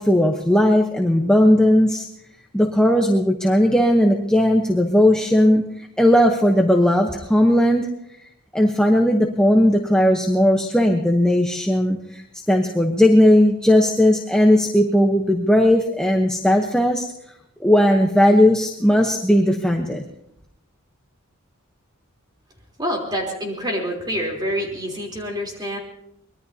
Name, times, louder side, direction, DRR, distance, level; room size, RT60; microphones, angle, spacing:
voice 1, 0.0-2.1 2.5-7.9 8.5-12.2 12.5-17.1 17.6-20.0, left 1 dB, 5° left, 1 dB, 0.9 m, -17 dB
voice 2, 22.8-25.8, equal, 20° right, 0 dB, 3.4 m, -26 dB
24.0 x 21.0 x 2.8 m, 0.79 s
head